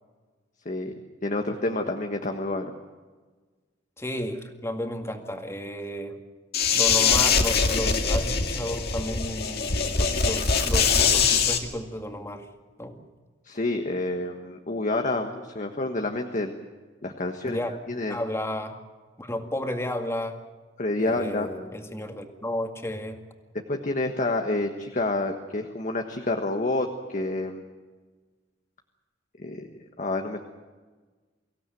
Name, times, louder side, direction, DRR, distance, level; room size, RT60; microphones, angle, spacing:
voice 1, 1.2-2.7 13.4-16.5 17.0-17.6 17.9-18.2 20.8-21.5 23.7-27.6 29.4-29.7 30.0-30.4, left 2 dB, 45° left, 4 dB, 1.4 m, -28 dB
voice 2, 4.0-6.2 6.7-12.5 12.8-13.0 17.4-17.7 18.1-18.8 19.2-20.4 21.0-23.2, left 1 dB, 15° left, 4 dB, 2.2 m, -32 dB
sound 1, 6.5-11.6, left 5 dB, 60° left, 2.2 m, -23 dB
24.0 x 16.5 x 9.2 m, 1.4 s
head